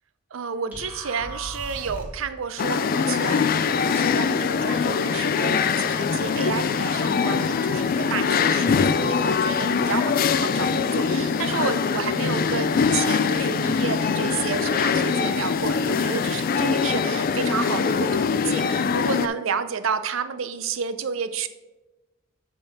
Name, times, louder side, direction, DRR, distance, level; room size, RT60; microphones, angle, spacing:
voice 1, 0.3-21.5, right 6 dB, 90° right, 11 dB, 0.5 m, -31 dB
sound 1, 0.7-2.3, equal, 5° right, 1.4 m, -36 dB
sound 2, 2.6-19.3, left 5 dB, 45° left, 0.3 m, -23 dB
9.0 x 3.7 x 5.3 m, 1.0 s
head